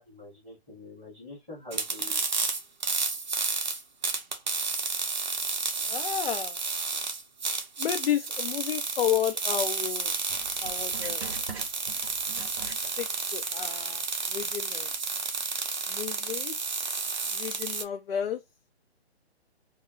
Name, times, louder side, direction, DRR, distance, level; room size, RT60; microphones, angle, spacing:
voice 1, 0.0-2.2, left 2 dB, ahead, 0.6 m, -45 dB
sound 1, 1.7-17.8, right 4 dB, 45° right, 0.5 m, -31 dB
voice 2, 5.9-6.6 7.8-10.1 10.6-11.4 13.0-14.9 15.9-16.5 17.3-18.4, left 10 dB, 65° left, 0.4 m, -32 dB
Writing, 10.3-13.3 13.6-13.7 14.4-14.5, right 5 dB, 70° right, 0.8 m, -43 dB
2.3 x 2.0 x 3.1 m
hypercardioid pair, 170°, 33 cm